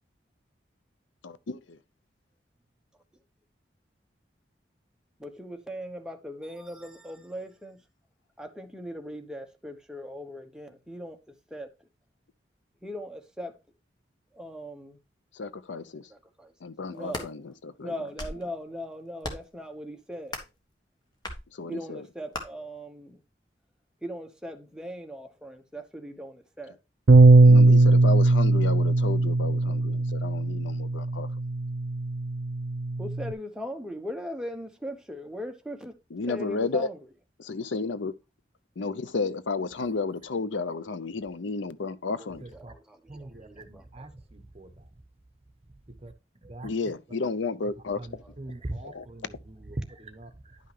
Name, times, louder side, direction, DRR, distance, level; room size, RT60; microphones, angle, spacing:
voice 1, 1.2-1.8 15.4-16.0 16.6-17.9 21.5-22.1 27.4-31.3 36.1-36.9 37.4-38.1 38.8-42.5 46.6-48.2 48.8-49.0, left 3 dB, 90° left, 0.6 m, -32 dB
voice 2, 5.2-7.8 8.4-11.2 11.5-11.7 12.8-13.5 14.4-15.0 16.1-16.5 16.9-17.3 17.8-20.4 21.7-23.2 24.0-26.8 33.0-35.9 36.3-37.1 42.2-44.1 48.2-48.3, equal, 5° right, 1.0 m, -39 dB
sound 1, 16.9-17.3 17.9-18.5 19.2-19.6 20.3-20.6 21.2-21.4 22.3-22.4, left 1 dB, 25° left, 1.5 m, -36 dB
Bass guitar, 27.1-33.3, right 2 dB, 80° right, 0.6 m, -19 dB
voice 3, 42.4-42.7 43.1-44.7 45.9-46.1 46.4-46.7 47.6-50.6, right 1 dB, 35° right, 1.1 m, -41 dB
11.0 x 5.6 x 3.3 m
head